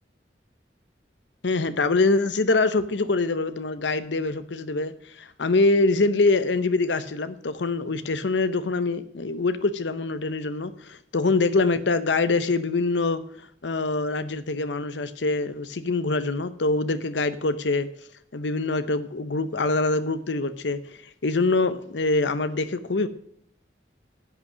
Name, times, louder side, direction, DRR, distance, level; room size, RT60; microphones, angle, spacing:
voice 1, 1.4-13.2 13.6-17.9 18.3-23.1, left 3 dB, 85° left, 13 dB, 0.8 m, -24 dB
11.0 x 8.2 x 6.2 m, 0.67 s
head